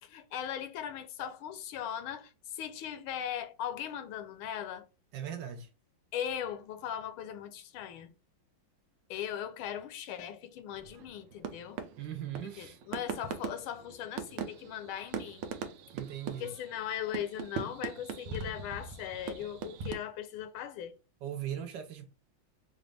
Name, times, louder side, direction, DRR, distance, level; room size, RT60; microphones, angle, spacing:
voice 1, 0.0-4.9 6.1-8.1 9.1-11.8 12.6-15.4 16.4-20.9, left 10 dB, 80° left, 1.4 m, -39 dB
voice 2, 5.1-5.7 12.0-12.8 15.9-16.5 21.2-22.1, right 10 dB, 70° right, 1.2 m, -39 dB
sound 1, 10.7-19.9, right 6 dB, 90° right, 1.5 m, -41 dB
4.9 x 2.5 x 3.2 m
omnidirectional pair, 2.3 m